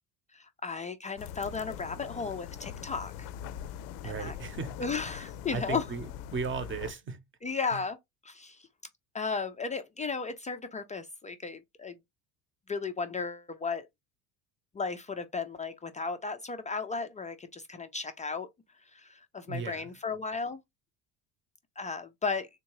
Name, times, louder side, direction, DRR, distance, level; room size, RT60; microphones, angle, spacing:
voice 1, 0.3-3.3 4.0-4.3 4.8-5.8 7.4-8.0 8.2-8.6 9.1-12.0 12.7-13.9 14.7-18.5 18.9-20.6 21.8-22.5, left 4 dB, 20° left, 0.3 m, -35 dB
sound 1, 1.2-6.9, left 9 dB, 85° left, 0.5 m, -42 dB
voice 2, 4.0-7.2 7.7-7.8 19.5-19.9, right 5 dB, 25° right, 0.8 m, -37 dB
3.6 x 2.7 x 3.0 m
supercardioid pair, 95°, 45 cm